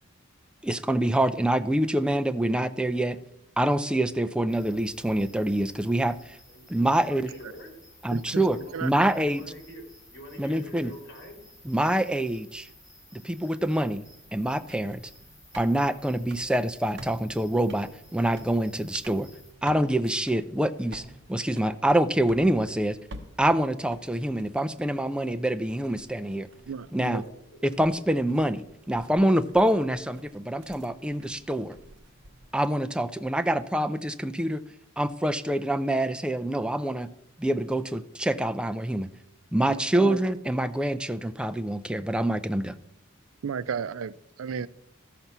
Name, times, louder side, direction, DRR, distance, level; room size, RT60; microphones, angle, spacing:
voice 1, 0.6-3.2 3.6-6.4 6.7-7.3 8.0-9.4 10.4-10.9 11.7-12.7 13.1-14.0 14.3-15.0 15.6-19.3 19.6-23.0 23.4-26.5 26.9-27.2 27.6-31.8 32.5-34.6 35.0-37.1 37.4-39.1 39.5-42.8, right 1 dB, 5° right, 0.4 m, -26 dB
sound 1, 4.5-19.5, left 1 dB, 15° left, 3.8 m, -54 dB
voice 2, 6.9-7.7 8.5-8.7 9.2-9.8 10.1-11.4 27.2-27.6, equal, 55° left, 3.9 m, -45 dB
voice 3, 8.1-8.4 8.7-8.9 26.7-27.2 39.7-40.2 43.4-44.7, right 6 dB, 85° right, 0.4 m, -34 dB
sound 2, 14.2-32.7, right 1 dB, 55° right, 0.9 m, -50 dB
13.5 x 5.9 x 5.5 m
head